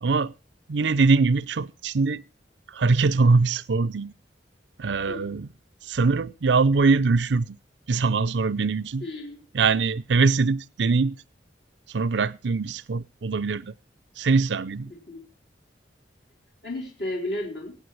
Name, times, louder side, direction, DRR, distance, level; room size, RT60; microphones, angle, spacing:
voice 1, 0.0-0.3 0.7-2.3 2.7-4.1 4.8-5.5 5.8-7.6 7.9-9.0 9.5-11.2 11.9-13.7 14.2-14.9, right 4 dB, 85° right, 0.5 m, -22 dB
voice 2, 9.0-9.4 14.9-15.3 16.6-17.8, left 1 dB, 70° left, 3.9 m, -33 dB
24.5 x 8.7 x 3.2 m
head